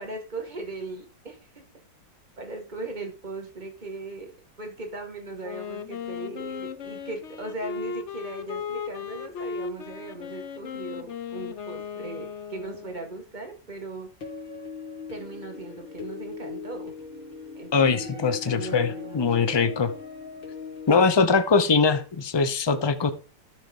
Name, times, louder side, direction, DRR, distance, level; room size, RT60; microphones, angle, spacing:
voice 1, 0.0-1.6 2.4-4.3 4.6-14.1 15.1-16.9 17.5-19.7, right 2 dB, 25° right, 3 dB, 2.1 m, -38 dB
Wind instrument woodwind instrument, 5.4-13.2, left 6 dB, 55° left, 0.8 m, -36 dB
sound 1, 14.2-21.0, left 5 dB, 80° left, 3.4 m, -39 dB
voice 2, 17.7-19.9 20.9-23.1, left 4 dB, 40° left, 9 dB, 0.3 m, -22 dB
12.5 x 4.5 x 5.5 m, 0.35 s
omnidirectional pair, 2.0 m